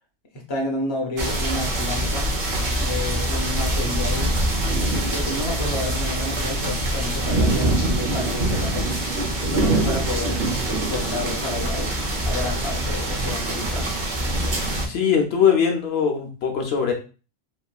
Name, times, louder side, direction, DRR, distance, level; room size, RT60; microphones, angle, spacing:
voice 1, 0.3-2.4 2.7-4.3 4.7-8.9 9.4-10.4 10.7-12.0 12.2-13.9, left 2 dB, 30° left, 0 dB, 0.7 m, -31 dB
sound 1, 1.2-14.9, right 1 dB, 50° right, 0.8 m, -24 dB
voice 2, 14.8-16.9, left 7 dB, 70° left, 3 dB, 0.9 m, -21 dB
3.1 x 2.5 x 2.3 m, 0.34 s
omnidirectional pair, 1.1 m